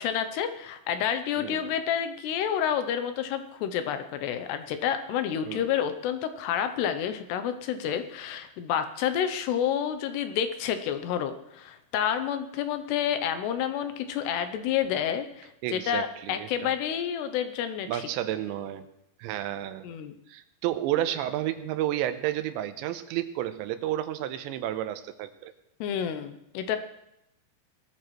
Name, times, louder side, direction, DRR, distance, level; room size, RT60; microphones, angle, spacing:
voice 1, 0.0-18.0 19.8-20.1 25.8-26.8, left 9 dB, 75° left, 9 dB, 2.7 m, -29 dB
voice 2, 1.4-1.7 5.4-5.7 15.6-16.7 17.9-18.9 19.2-19.9 20.3-25.5, right 12 dB, 90° right, 10 dB, 3.0 m, -31 dB
19.5 x 13.5 x 3.2 m, 0.81 s
omnidirectional pair, 5.2 m